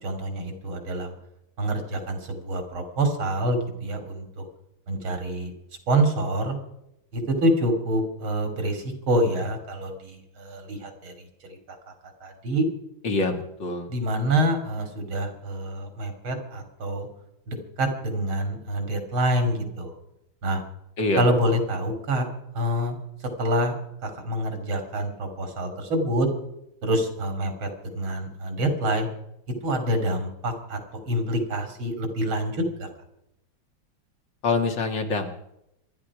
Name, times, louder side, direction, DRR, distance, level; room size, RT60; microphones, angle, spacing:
voice 1, 0.0-1.1 1.6-4.4 4.9-5.5 5.9-6.6 7.1-11.1 11.5-11.6 12.2-12.7 13.9-17.1 17.5-19.9 20.4-20.6 21.2-22.3 22.5-23.0 23.4-23.7 24.0-26.3 26.8-27.7 27.9-29.1 29.6-30.8 31.1-32.9, right 1 dB, 85° right, 6 dB, 3.8 m, -26 dB
voice 2, 13.0-13.9 21.0-21.6 34.4-35.4, left 3 dB, 65° left, 4 dB, 2.7 m, -26 dB
26.0 x 10.5 x 4.9 m, 0.81 s
omnidirectional pair, 2.2 m